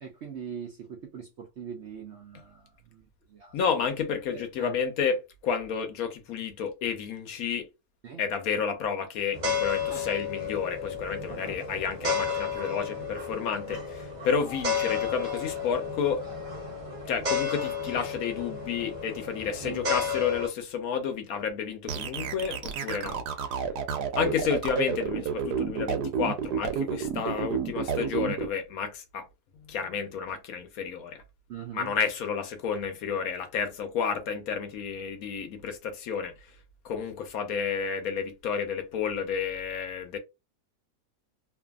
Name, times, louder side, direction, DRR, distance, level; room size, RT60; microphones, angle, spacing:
voice 1, 0.0-3.0 3.3-3.5 4.3-4.8 8.0-8.2 9.9-10.1 11.3-11.6 13.7-13.8 19.6-19.8 23.0-23.2 23.9-24.1 31.5-31.9, right 7 dB, 70° right, 0.6 m, -42 dB
voice 2, 3.5-7.7 8.2-16.2 17.1-23.2 24.1-29.3 29.5-31.2 31.7-36.3 36.8-40.2, left 6 dB, 70° left, 1.0 m, -31 dB
sound 1, 9.3-20.5, left 5 dB, 35° right, 0.9 m, -32 dB
sound 2, 21.9-28.5, right 7 dB, 85° right, 1.2 m, -30 dB
2.6 x 2.5 x 2.3 m
omnidirectional pair, 1.7 m